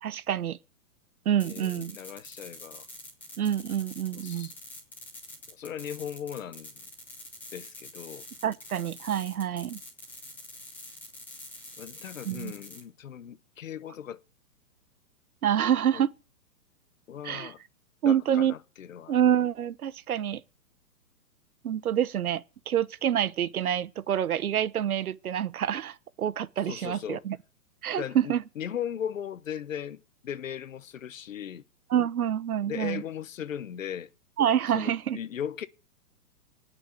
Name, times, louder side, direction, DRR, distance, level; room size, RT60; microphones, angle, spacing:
voice 1, 0.0-0.6 1.2-2.0 3.4-4.5 8.4-9.8 12.2-12.5 15.4-16.1 17.2-17.5 18.0-18.5 19.1-20.4 21.6-27.4 27.8-28.4 31.9-33.0 34.4-35.2, right 10 dB, 65° right, 1.1 m, -27 dB
voice 2, 1.4-2.9 4.1-4.5 5.5-6.7 7.5-8.3 11.8-14.2 15.9-16.0 17.1-17.6 18.0-19.2 26.7-27.2 28.0-31.6 32.7-34.1 34.7-35.7, left 9 dB, 55° left, 1.1 m, -38 dB
sound 1, 1.4-12.8, left 1 dB, 5° left, 3.1 m, -46 dB
18.5 x 6.5 x 9.1 m
hypercardioid pair, 180°, 47 cm